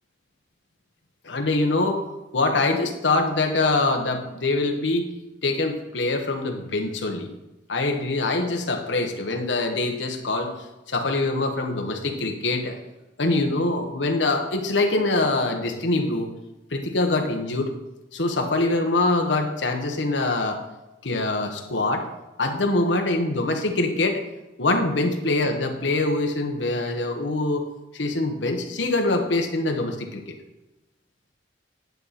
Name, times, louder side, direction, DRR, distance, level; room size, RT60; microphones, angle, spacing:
voice 1, 1.2-2.0 2.3-5.1 5.4-7.3 7.7-10.5 10.9-12.8 13.2-16.3 16.7-17.7 18.1-20.6 21.0-22.1 22.4-24.2 24.6-30.2, left 2 dB, 85° left, 3 dB, 1.3 m, -24 dB
10.5 x 8.0 x 4.2 m, 1.0 s
head